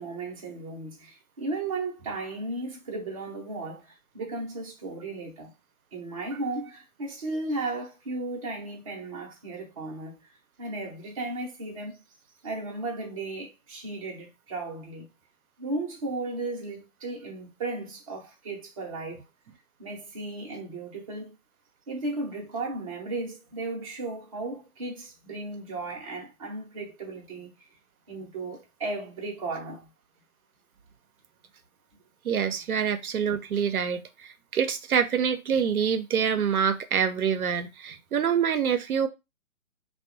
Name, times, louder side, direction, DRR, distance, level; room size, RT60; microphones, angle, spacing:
voice 1, 0.0-5.5 5.9-10.2 10.6-12.0 12.4-15.0 15.6-19.3 19.8-21.3 21.9-27.5 28.1-29.9, right 2 dB, 25° right, 0.6 m, -35 dB
voice 2, 32.2-34.0 34.5-39.1, right 7 dB, 85° right, 0.5 m, -26 dB
2.6 x 2.2 x 2.5 m
figure-of-eight pair, 135°, 42 cm